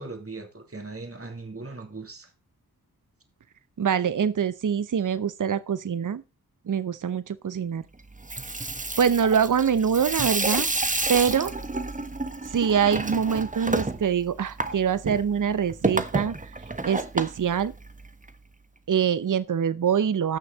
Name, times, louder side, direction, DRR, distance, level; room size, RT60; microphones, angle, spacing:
voice 1, 0.0-2.3, right 3 dB, 35° right, 2.9 m, -39 dB
voice 2, 3.8-6.2 6.7-7.8 9.0-10.7 11.1-11.5 12.5-16.5 16.8-17.7 18.9-20.4, right 7 dB, 55° right, 0.8 m, -24 dB
Water tap faucet / Sink (filling or washing), 8.1-18.3, right 2 dB, 20° right, 1.3 m, -30 dB
15.0 x 6.4 x 4.0 m
cardioid pair, 50°, 38 cm